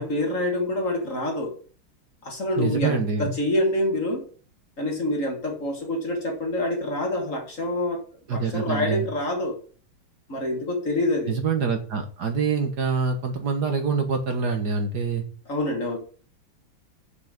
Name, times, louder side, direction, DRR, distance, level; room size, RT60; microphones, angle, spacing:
voice 1, 0.0-1.6 2.2-4.2 4.8-8.0 8.3-9.6 10.3-11.4 15.5-16.0, left 1 dB, 40° left, 2 dB, 2.0 m, -26 dB
voice 2, 2.6-3.3 8.3-9.1 11.3-15.2, right 5 dB, 55° right, 5 dB, 1.6 m, -25 dB
6.7 x 5.6 x 7.1 m, 0.41 s
omnidirectional pair, 2.3 m